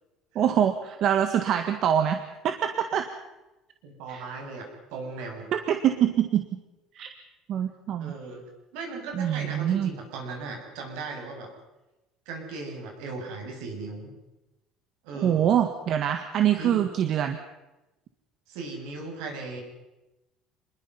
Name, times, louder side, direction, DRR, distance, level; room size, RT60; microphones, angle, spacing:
voice 1, 0.3-3.1 4.1-4.2 5.5-6.4 6.9-7.1 7.5-8.1 9.1-9.9 15.2-17.4, right 9 dB, 50° right, 7 dB, 1.6 m, -24 dB
voice 2, 3.8-5.5 8.0-8.4 8.7-11.5 12.3-14.1 15.0-15.5 16.6-16.9 18.5-19.6, right 3 dB, 85° right, 2 dB, 7.2 m, -37 dB
27.0 x 21.0 x 5.6 m, 1.0 s
cardioid pair, 135°, 0 cm